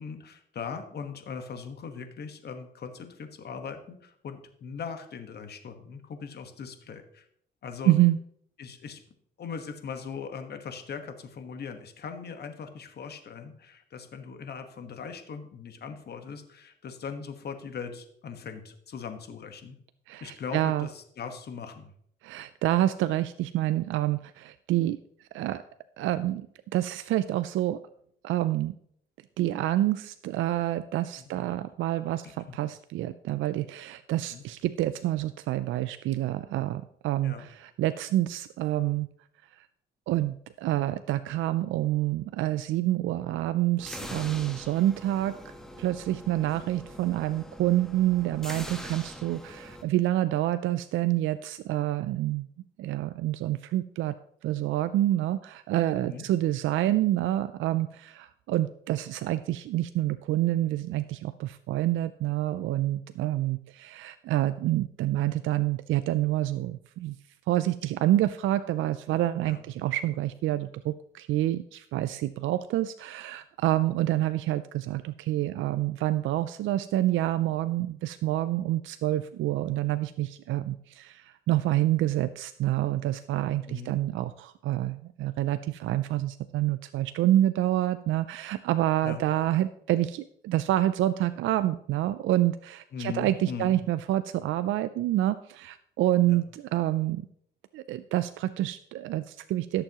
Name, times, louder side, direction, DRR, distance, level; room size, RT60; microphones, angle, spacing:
voice 1, 0.0-7.2 7.6-7.9 8.6-9.0 9.4-19.8 20.2-21.9 31.2-31.4 32.5-32.6 34.3-34.4 37.2-37.5 56.0-56.2 69.4-69.6 83.6-83.9 89.0-89.2 92.9-93.7 96.3-96.4, left 6 dB, 55° left, 7 dB, 1.4 m, -40 dB
voice 2, 7.9-8.2 20.1-20.9 22.2-25.0 25.3-25.6 26.0-26.5 26.7-27.8 28.2-28.7 29.4-39.1 39.6-39.7 40.1-52.5 52.8-54.1 54.4-67.2 67.5-97.3 97.7-99.8, right 14 dB, 80° right, 12 dB, 0.4 m, -27 dB
sound 1, 43.8-49.8, left 1 dB, 5° left, 1.3 m, -43 dB
16.5 x 6.8 x 3.0 m, 0.68 s
cardioid pair, 90°, 20 cm